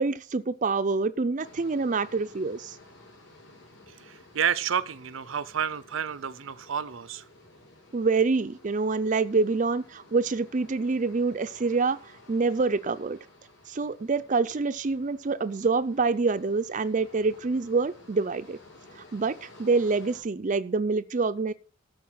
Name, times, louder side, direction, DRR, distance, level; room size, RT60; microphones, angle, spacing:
voice 1, 0.0-2.8 7.9-12.0 12.3-13.2 13.7-18.6 19.1-21.5, right 4 dB, 40° right, 0.5 m, -26 dB
sound 1, 1.4-20.2, left 2 dB, 60° left, 6.9 m, -53 dB
voice 2, 3.9-7.3, right 8 dB, 80° right, 0.6 m, -30 dB
13.0 x 4.7 x 7.5 m
head